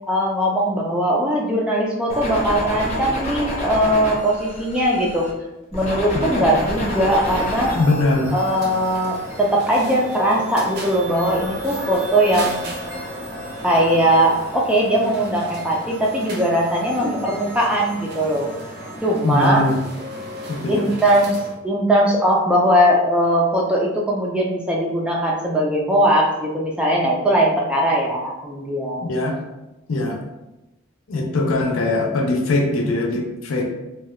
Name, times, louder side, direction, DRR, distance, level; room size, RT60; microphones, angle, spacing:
voice 1, 0.1-5.3 5.7-7.7 8.3-12.6 13.6-18.5 19.0-19.6 20.7-21.4 21.6-29.1, right 1 dB, 5° right, -3 dB, 0.3 m, -20 dB
sound 1, 2.1-5.3 5.7-8.0, left 1 dB, 30° left, 0.8 m, -28 dB
voice 2, 6.1-6.5 7.7-8.3 19.2-19.8 20.5-20.9 29.0-29.4 29.9-30.2 31.1-33.7, left 2 dB, 80° left, 1 dB, 0.5 m, -21 dB
sound 2, 6.2-19.0, left 2 dB, 90° right, 1.0 m, -36 dB
sound 3, 8.3-21.6, right 1 dB, 50° right, 0.6 m, -36 dB
2.7 x 2.2 x 3.0 m, 0.98 s
head